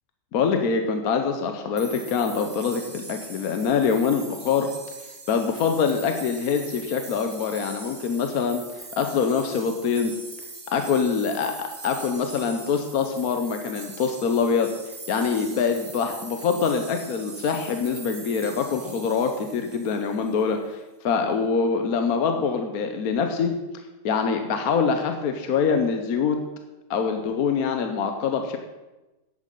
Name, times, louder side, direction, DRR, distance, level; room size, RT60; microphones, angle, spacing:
voice 1, 0.3-4.7 5.3-8.6 8.9-10.1 10.7-14.7 15.1-20.8 21.0-23.6 24.0-26.4 26.9-28.6, left 5 dB, 60° left, 5 dB, 1.2 m, -24 dB
sound 1, 1.8-20.5, right 3 dB, 20° right, 0.6 m, -42 dB
10.5 x 8.4 x 5.4 m, 1.1 s
omnidirectional pair, 1.9 m